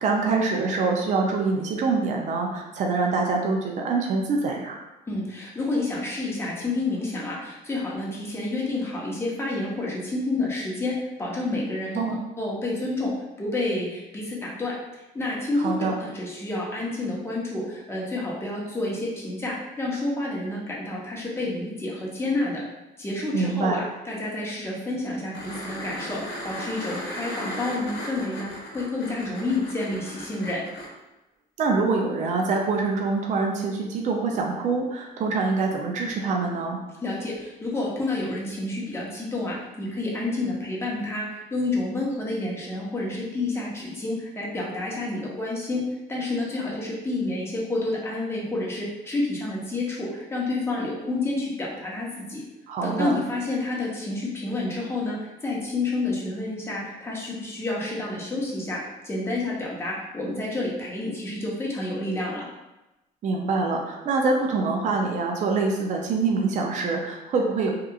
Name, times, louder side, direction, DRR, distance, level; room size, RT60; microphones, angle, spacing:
voice 1, 0.0-4.8 11.9-12.2 15.6-16.0 23.3-23.8 31.6-36.8 52.7-53.2 63.2-67.7, right 4 dB, 45° right, 1 dB, 0.4 m, -25 dB
voice 2, 5.1-13.1 13.4-14.7 15.1-22.6 23.0-30.6 37.0-45.8 46.1-52.4 52.8-62.5, left 2 dB, 15° left, -5 dB, 0.8 m, -29 dB
sound 1, 25.3-30.9 33.6-33.7, left 1 dB, 75° left, 0.8 m, -36 dB
2.8 x 2.3 x 2.3 m, 0.99 s
cardioid pair, 110°, 17 cm